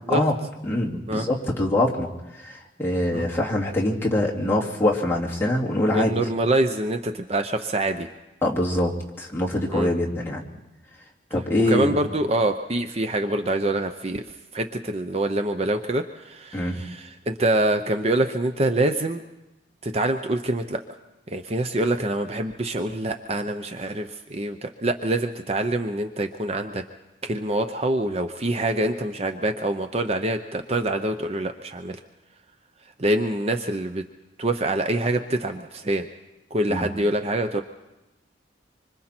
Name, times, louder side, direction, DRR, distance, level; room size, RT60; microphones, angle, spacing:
voice 1, 0.7-2.1 2.4-6.2 8.4-8.9 9.2-10.4 11.3-12.0 16.5-16.8 36.7-36.8, left 1 dB, 15° left, -4 dB, 2.5 m, -24 dB
voice 2, 5.9-8.1 9.7-9.9 11.7-14.2 14.5-19.2 19.8-20.8 21.3-26.8 27.2-32.0 33.0-34.0 34.4-36.1 36.5-37.6, right 1 dB, 35° right, 7 dB, 0.7 m, -25 dB
25.5 x 25.0 x 4.4 m, 1.0 s
head